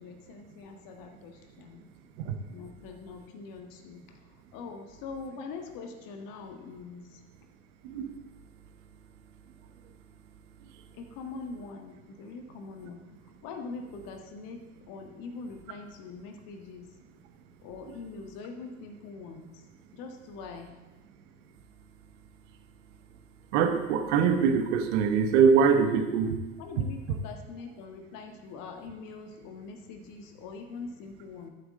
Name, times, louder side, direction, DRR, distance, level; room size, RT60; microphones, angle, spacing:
voice 1, 0.0-1.8 2.5-7.2 10.9-13.0 13.4-16.9 17.6-19.6 19.9-20.7 26.6-31.5, left 4 dB, 65° left, 4 dB, 1.5 m, -43 dB
voice 2, 7.8-8.2 23.5-26.4, right 6 dB, 80° right, 7 dB, 1.0 m, -23 dB
13.5 x 7.7 x 3.7 m, 1.2 s
hypercardioid pair, 75°, 35 cm